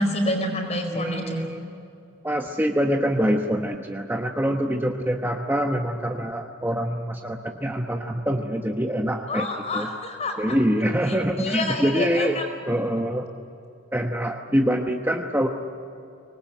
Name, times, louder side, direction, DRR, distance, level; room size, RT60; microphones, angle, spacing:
voice 1, 0.0-1.4 9.3-10.3 11.1-12.4, left 1 dB, 35° left, 3 dB, 4.7 m, -27 dB
voice 2, 0.9-1.6 2.2-9.9 10.4-12.4 12.7-13.3 13.9-15.5, equal, 10° right, 3 dB, 1.0 m, -25 dB
25.0 x 20.0 x 9.0 m, 2.7 s
head